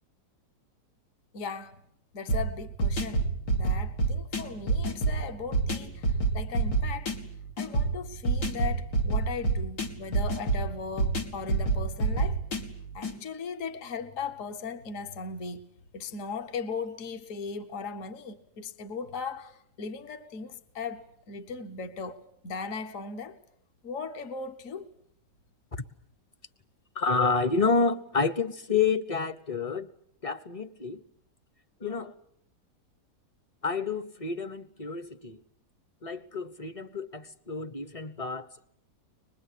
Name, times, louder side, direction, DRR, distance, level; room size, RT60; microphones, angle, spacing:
voice 1, 1.3-1.8 2.1-7.1 7.6-12.4 12.9-15.6 15.9-23.4 23.8-24.9, left 5 dB, 50° left, 1.6 m, -38 dB
sound 1, 2.3-13.2, right 3 dB, 80° left, 3.0 m, -28 dB
voice 2, 26.9-29.9 30.2-31.0 31.8-32.1 33.6-35.4 36.0-38.7, left 4 dB, 25° left, 1.0 m, -29 dB
25.0 x 21.0 x 8.5 m
omnidirectional pair, 1.8 m